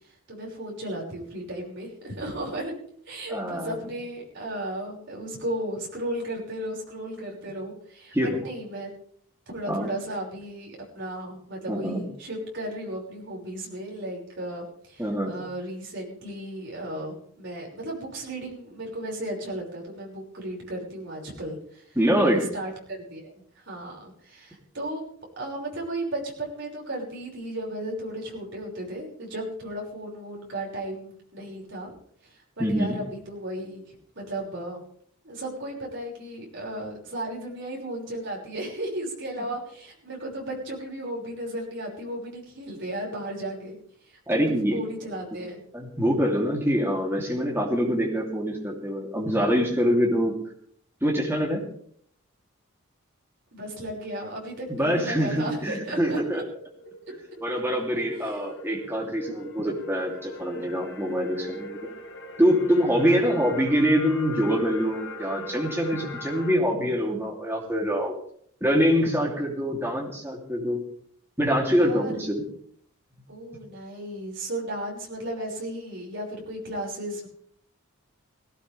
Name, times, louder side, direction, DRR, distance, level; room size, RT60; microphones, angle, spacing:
voice 1, 0.3-2.7 3.1-8.9 9.5-25.0 25.4-31.9 32.2-34.8 35.2-43.8 44.0-45.6 53.5-56.2 58.0-58.4 63.2-63.3 71.8-72.2 73.3-77.3, right 1 dB, 55° right, -2 dB, 6.0 m, -35 dB
voice 2, 3.3-3.7 8.1-8.4 9.7-9.9 11.7-12.0 15.0-15.3 21.9-22.4 32.6-33.0 44.3-44.8 45.7-50.3 51.0-51.6 54.7-56.4 57.4-61.9 62.4-68.1 68.6-70.8 71.4-72.4, equal, 10° right, -1 dB, 3.0 m, -24 dB
sound 1, 56.5-66.6, left 1 dB, 50° left, 2.0 m, -41 dB
18.0 x 17.5 x 3.5 m, 0.62 s
head